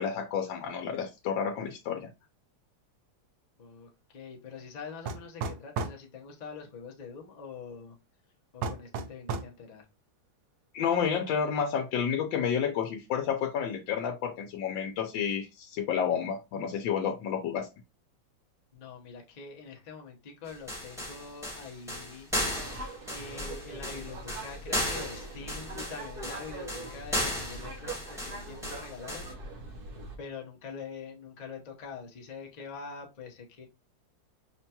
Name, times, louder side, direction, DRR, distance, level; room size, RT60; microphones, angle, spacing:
voice 1, 0.0-2.1 10.7-17.7, left 7 dB, 90° left, 3 dB, 1.3 m, -30 dB
voice 2, 3.6-8.0 8.5-9.9 18.7-22.3 23.1-29.3 30.2-33.7, left 5 dB, 70° left, 1 dB, 0.4 m, -44 dB
sound 1, 5.1-6.0 8.6-9.5, right 4 dB, 70° right, 1.0 m, -33 dB
sound 2, 20.5-29.3, left 1 dB, 5° right, 0.6 m, -35 dB
sound 3, 22.3-30.2, right 2 dB, 50° right, 0.6 m, -42 dB
5.6 x 2.2 x 2.8 m, 0.26 s
omnidirectional pair, 2.0 m